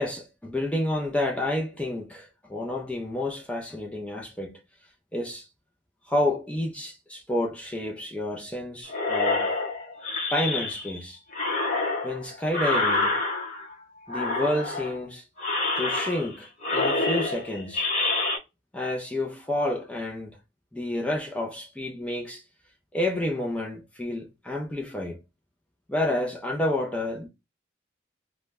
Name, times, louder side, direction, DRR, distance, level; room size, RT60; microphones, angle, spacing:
voice 1, 0.0-4.6 5.1-5.5 6.1-9.5 10.3-11.2 12.0-13.2 14.1-15.2 15.7-17.8 18.7-20.4 20.7-22.4 22.9-25.2 25.9-27.3, left 1 dB, 5° left, 0.3 m, -29 dB
sound 1, 8.9-11.0 11.3-13.7 14.1-15.0 15.4-16.4 16.6-18.4, left 2 dB, 40° left, 0.7 m, -27 dB
2.1 x 2.0 x 3.3 m
head